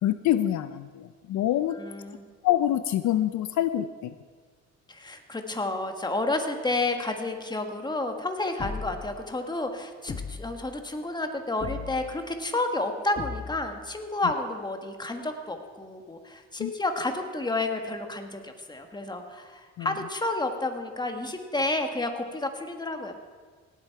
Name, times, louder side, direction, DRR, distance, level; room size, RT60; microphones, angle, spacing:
voice 1, 0.0-1.8 2.4-4.1 16.6-16.7 19.8-19.9, left 12 dB, 70° left, 12 dB, 0.5 m, -26 dB
voice 2, 1.8-2.3 4.9-23.1, left 2 dB, 15° left, 5 dB, 1.4 m, -30 dB
sound 1, 8.6-9.2 10.1-10.7 11.6-12.2 13.2-13.8, left 5 dB, 30° left, 0.8 m, -37 dB
17.5 x 8.4 x 4.6 m, 1.5 s
cardioid pair, 90°, 30 cm